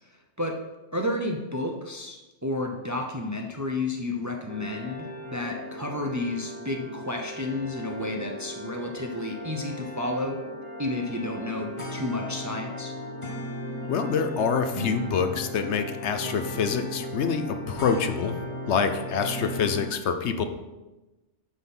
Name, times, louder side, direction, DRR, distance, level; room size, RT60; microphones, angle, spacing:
voice 1, 0.9-10.4 10.8-12.9, left 2 dB, 20° right, 2 dB, 0.6 m, -31 dB
sound 1, 4.5-19.8, left 1 dB, 25° left, 1.1 m, -37 dB
voice 2, 13.9-18.4 18.7-20.4, left 6 dB, 70° left, 7 dB, 1.0 m, -26 dB
9.7 x 4.3 x 5.5 m, 1.1 s
omnidirectional pair, 1.2 m